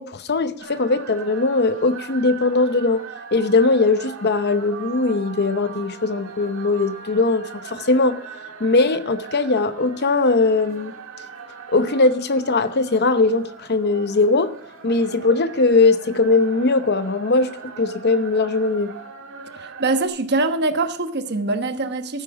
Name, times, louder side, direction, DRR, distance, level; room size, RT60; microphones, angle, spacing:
voice 1, 0.0-3.1 3.3-8.2 8.6-10.9 11.7-14.5 14.8-18.9, left 3 dB, 55° left, 0.8 m, -20 dB
sound 1, 0.6-20.1, right 5 dB, 80° right, 1.8 m, -39 dB
voice 2, 19.5-22.2, right 2 dB, 55° right, 1.2 m, -23 dB
14.5 x 9.1 x 4.9 m
head